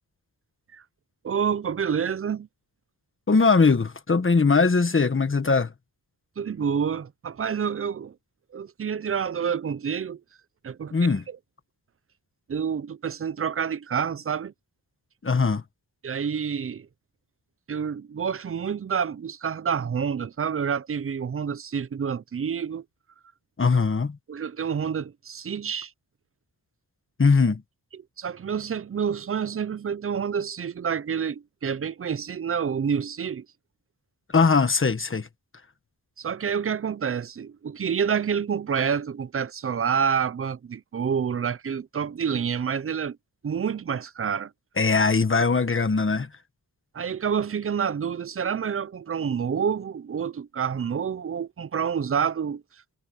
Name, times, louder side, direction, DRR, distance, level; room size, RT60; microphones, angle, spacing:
voice 1, 1.2-2.5 6.4-8.1 8.5-10.2 10.6-11.0 11.3-11.4 12.5-14.5 16.0-16.9 17.7-22.8 24.3-25.9 28.2-33.5 36.2-43.2 43.4-44.5 46.9-52.6, right 7 dB, 35° right, 0.5 m, -28 dB
voice 2, 3.3-5.7 10.9-11.2 15.2-15.6 23.6-24.2 27.2-27.6 34.3-35.3 44.8-46.3, left 4 dB, 30° left, 1.3 m, -20 dB
wide cardioid pair, 140°, 38 cm